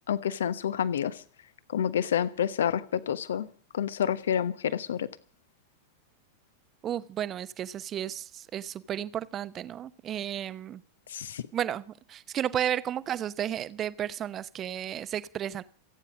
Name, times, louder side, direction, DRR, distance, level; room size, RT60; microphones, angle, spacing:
voice 1, 0.1-1.2 1.7-3.5 3.7-5.1 11.1-11.5, left 9 dB, 65° left, 16 dB, 1.1 m, -28 dB
voice 2, 6.8-10.8 11.5-15.6, right 10 dB, 30° right, 17 dB, 0.9 m, -33 dB
28.5 x 9.9 x 5.2 m, 0.41 s
figure-of-eight pair, 90°, 0 cm